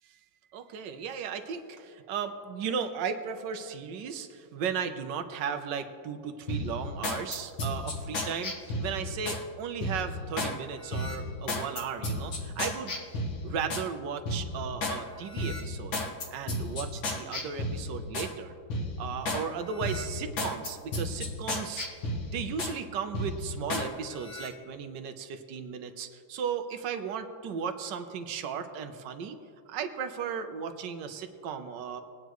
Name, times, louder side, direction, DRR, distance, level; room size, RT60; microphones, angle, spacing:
voice 1, 0.5-8.5 8.8-13.0 13.4-16.0 16.3-18.5 19.0-21.9 22.2-29.4 29.7-32.0, right 6 dB, 70° right, 8 dB, 1.4 m, -35 dB
sound 1, 6.5-9.4 9.8-10.5 10.9-13.9 14.3-15.0 15.3-18.3 18.7-19.4 19.8-22.8 23.1-23.9 24.2-24.5, left 1 dB, 85° left, 2.2 m, -33 dB
21.5 x 9.3 x 3.1 m, 2.4 s
omnidirectional pair, 2.1 m